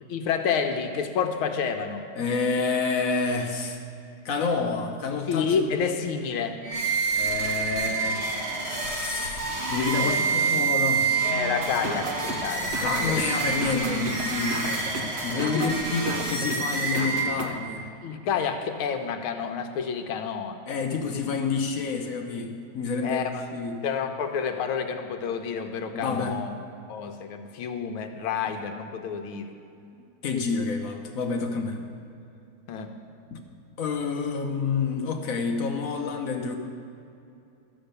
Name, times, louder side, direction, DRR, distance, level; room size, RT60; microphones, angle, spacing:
voice 1, 0.1-2.0 5.3-6.6 10.0-10.3 11.2-12.7 13.0-13.2 15.5-15.7 16.6-16.7 18.0-20.6 23.0-23.4 23.8-26.5 26.9-29.5 32.7-32.9, left 6 dB, 90° left, 6 dB, 1.6 m, -29 dB
voice 2, 2.2-3.8 4.2-5.7 7.1-8.3 8.6-9.4 9.7-11.1 12.8-14.8 15.2-17.9 20.7-23.8 25.9-26.4 30.2-31.8 33.3-33.4 33.8-36.6, left 4 dB, 60° left, 3 dB, 0.9 m, -28 dB
sound 1, 6.6-17.7, right 4 dB, 35° right, 1.5 m, -28 dB
sound 2, 11.6-17.5, right 2 dB, 60° right, 0.7 m, -34 dB
13.0 x 6.5 x 6.7 m, 2.6 s
omnidirectional pair, 2.3 m